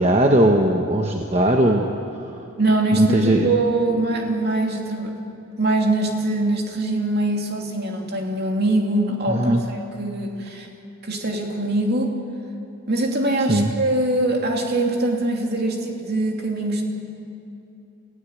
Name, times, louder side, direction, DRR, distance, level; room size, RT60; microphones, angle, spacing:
voice 1, 0.0-1.9 2.9-3.5 9.3-9.6 13.5-13.7, right 1 dB, 30° right, 2 dB, 1.1 m, -18 dB
voice 2, 2.6-5.1 5.6-10.7 11.0-12.2 12.9-16.8, right 2 dB, 45° right, 1 dB, 2.9 m, -23 dB
28.5 x 16.5 x 8.2 m, 2.8 s
head